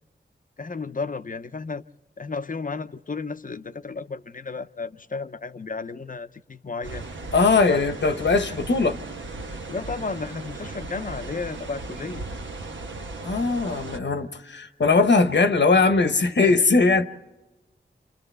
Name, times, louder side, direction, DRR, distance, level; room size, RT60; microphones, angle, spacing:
voice 1, 0.6-1.8 2.2-7.1 7.7-7.8 9.7-12.3 16.4-16.6, left 4 dB, 45° left, 0.6 m, -33 dB
sound 1, 6.8-14.0, right 2 dB, 80° right, 1.1 m, -37 dB
voice 2, 7.3-9.0 13.2-17.1, left 3 dB, 70° left, 1.0 m, -20 dB
29.5 x 27.0 x 3.4 m
wide cardioid pair, 65°, 19 cm